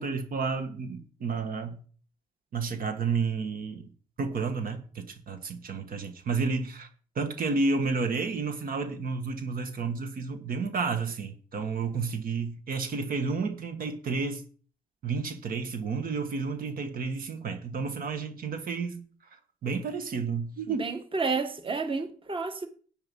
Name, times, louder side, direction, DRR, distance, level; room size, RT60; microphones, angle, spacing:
voice 1, 0.0-1.8 2.5-3.9 4.2-6.9 7.1-14.4 15.0-19.1 19.6-20.9, right 4 dB, 70° right, 1.7 m, -31 dB
voice 2, 20.7-22.7, right 4 dB, 35° right, 1.7 m, -31 dB
10.5 x 9.2 x 5.4 m
cardioid pair, 90°, 15 cm